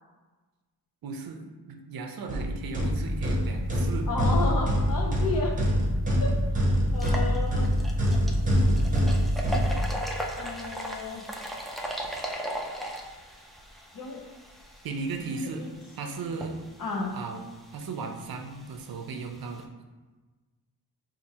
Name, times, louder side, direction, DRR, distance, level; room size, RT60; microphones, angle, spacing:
voice 1, 1.0-4.1 14.8-15.6 16.0-16.6 17.1-17.4 17.7-19.6, right 4 dB, 65° right, 4 dB, 0.5 m, -36 dB
sound 1, 2.3-10.3, equal, 20° right, 0.8 m, -25 dB
voice 2, 4.1-5.5 6.2-7.7 10.4-11.3 13.9-14.2 15.3-15.7 16.8-17.2, left 3 dB, 60° left, 0 dB, 0.8 m, -33 dB
sound 2, 5.6-5.7 6.2-6.3 6.9-19.6, equal, ahead, 0.3 m, -39 dB
5.1 x 2.6 x 2.8 m, 1.3 s
wide cardioid pair, 130°, 38 cm